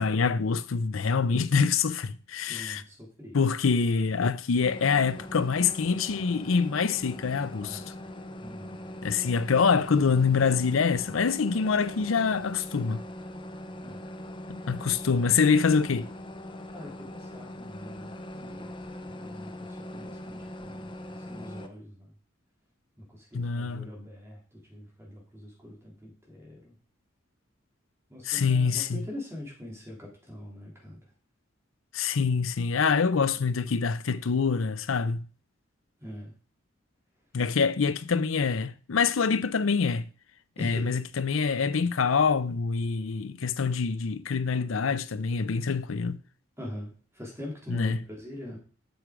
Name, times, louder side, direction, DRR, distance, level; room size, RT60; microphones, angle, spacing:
voice 1, 0.0-2.8 3.3-7.8 9.0-13.0 14.7-16.1 23.3-23.9 28.3-29.0 31.9-35.3 37.3-40.0 40.6-46.2 47.7-48.0, left 5 dB, 80° left, 0.6 m, -25 dB
voice 2, 2.5-3.4 7.6-7.9 8.4-8.8 13.8-14.1 16.7-18.8 19.1-22.1 23.0-26.8 28.1-31.1 36.0-36.3 40.6-41.0 46.6-48.6, left 1 dB, 15° right, 3.0 m, -43 dB
sound 1, 4.6-21.7, left 1 dB, 25° left, 0.7 m, -41 dB
7.9 x 6.5 x 5.0 m
head